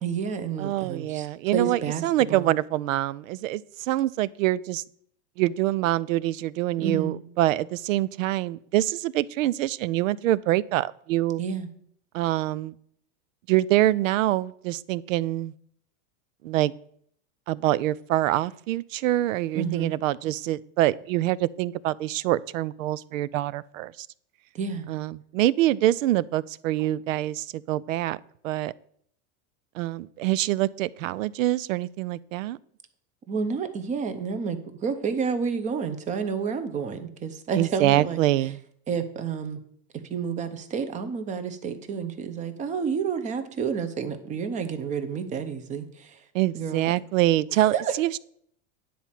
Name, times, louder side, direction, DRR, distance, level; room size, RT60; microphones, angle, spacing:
voice 1, 0.0-1.3 1.5-2.0 2.3-2.5 6.8-7.2 11.4-11.7 19.5-19.9 24.5-24.9 33.3-38.2 38.9-39.6 40.1-46.2 46.5-46.9 47.7-47.9, right 6 dB, 20° right, 10 dB, 0.7 m, -30 dB
voice 2, 0.6-4.8 5.4-11.4 12.1-12.7 13.5-15.5 16.4-16.7 17.5-24.1 24.9-28.2 28.4-28.7 29.7-32.6 37.6-38.6 46.3-48.2, right 15 dB, 80° right, 21 dB, 0.6 m, -25 dB
10.0 x 4.3 x 7.4 m, 0.65 s
supercardioid pair, 155°, 39 cm